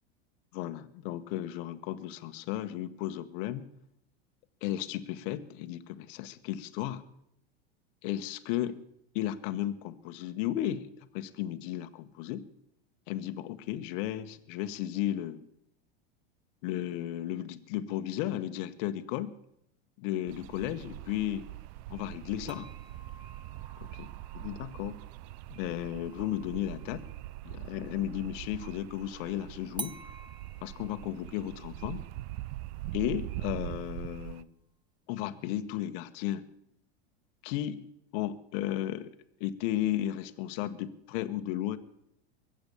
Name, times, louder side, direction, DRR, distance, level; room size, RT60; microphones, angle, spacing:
voice 1, 0.5-3.7 4.6-7.0 8.0-8.8 9.1-12.4 13.1-15.4 16.6-19.4 20.0-21.5 21.9-22.7 24.0-24.1 24.3-25.0 25.5-27.0 27.4-30.0 30.6-32.0 32.9-34.5 35.1-36.4 37.4-37.8 38.1-39.1 39.4-41.8, left 13 dB, 60° left, 9 dB, 1.2 m, -34 dB
sound 1, 20.3-34.4, right 16 dB, 50° right, 0.6 m, -42 dB
sound 2, 22.5-28.1 29.8-34.8, right 3 dB, 15° right, 0.9 m, -50 dB
22.5 x 8.0 x 6.9 m, 0.76 s
hypercardioid pair, 100°, 31 cm